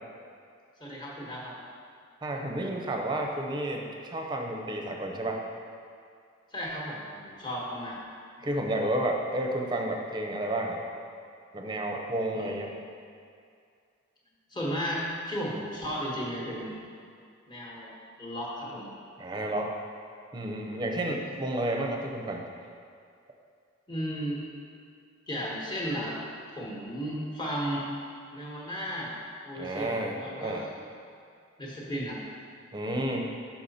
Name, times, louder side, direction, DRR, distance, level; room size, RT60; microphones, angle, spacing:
voice 1, 0.8-1.6 6.5-8.0 12.3-12.6 14.5-16.8 17.5-17.9 18.2-18.9 23.9-24.4 25.3-26.2 26.5-28.0 28.3-29.2 29.4-30.7 31.6-32.2, equal, 20° left, -4 dB, 1.2 m, -34 dB
voice 2, 2.2-5.4 8.4-10.8 11.5-12.7 19.2-19.7 20.3-22.5 29.5-30.6 32.7-33.3, right 1 dB, 20° right, 1 dB, 0.6 m, -31 dB
6.5 x 5.8 x 4.2 m, 2.3 s
head